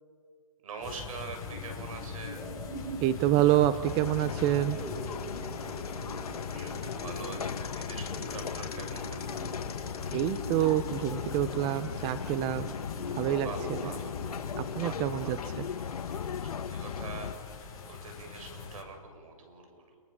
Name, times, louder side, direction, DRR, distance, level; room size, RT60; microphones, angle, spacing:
voice 1, 0.6-2.5 6.2-9.3 13.4-14.1 14.8-15.6 16.4-20.0, right 4 dB, 70° right, 5 dB, 7.5 m, -44 dB
sound 1, 0.8-18.8, left 5 dB, 20° left, 6.1 m, -44 dB
sound 2, 1.3-17.3, equal, 5° right, 5.7 m, -45 dB
voice 2, 3.0-4.8 10.1-12.7 13.1-13.8 14.6-15.6, right 14 dB, 25° right, 13 dB, 0.7 m, -27 dB
sound 3, 3.8-17.4, left 7 dB, 85° left, 1.3 m, -37 dB
29.0 x 23.5 x 7.3 m, 2.1 s
hypercardioid pair, 140°, 19 cm